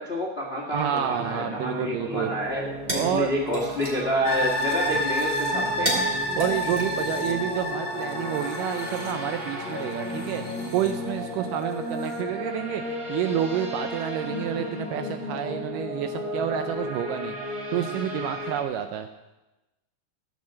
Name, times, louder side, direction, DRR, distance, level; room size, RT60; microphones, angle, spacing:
voice 1, 0.0-5.9, equal, 75° left, -2 dB, 0.5 m, -29 dB
guitar overthesea, 0.7-18.6, left 1 dB, 35° right, 2.6 m, -34 dB
voice 2, 0.7-2.3 2.9-3.3 5.0-5.1 5.9-6.0 6.4-17.4 17.7-19.1, right 9 dB, 80° right, 7 dB, 2.0 m, -29 dB
sound 1, 2.4-7.7, equal, 20° right, 2.1 m, -35 dB
sound 2, 4.2-11.5 11.9-12.0, equal, 55° left, 1.8 m, -30 dB
14.0 x 6.2 x 7.5 m, 1.0 s
omnidirectional pair, 4.4 m